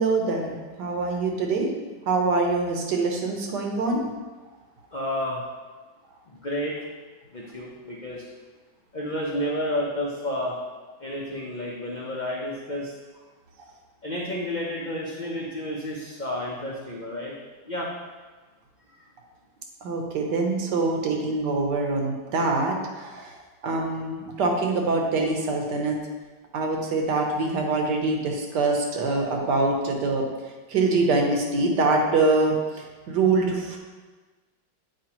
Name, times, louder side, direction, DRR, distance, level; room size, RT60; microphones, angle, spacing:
voice 1, 0.0-1.7 2.0-4.0 19.8-26.0 26.5-30.3 30.7-33.8, right 3 dB, 70° right, 1 dB, 1.5 m, -24 dB
voice 2, 4.9-5.4 6.3-6.8 7.3-8.3 8.9-10.6 11.0-12.9 14.0-17.3 17.6-17.9 19.0-19.1, left 1 dB, 85° left, -4 dB, 0.4 m, -31 dB
7.7 x 4.8 x 2.9 m, 1.3 s
omnidirectional pair, 1.9 m